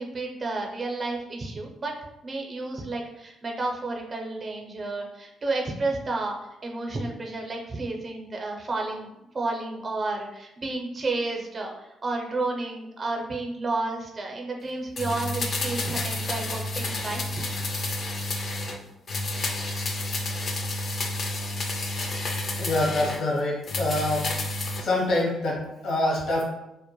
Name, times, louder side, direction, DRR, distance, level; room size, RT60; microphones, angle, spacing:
voice 1, 0.0-1.9 2.2-6.4 6.6-9.1 9.3-17.2, right 2 dB, 35° right, 1 dB, 0.5 m, -31 dB
sound 1, 15.0-18.8 19.1-23.2 23.6-24.9 25.2-25.3, left 2 dB, 50° left, 0.3 m, -30 dB
voice 2, 22.5-24.3 24.8-26.4, left 2 dB, 70° left, -4 dB, 0.7 m, -25 dB
2.1 x 2.1 x 2.9 m, 0.90 s
cardioid pair, 90°, 0 cm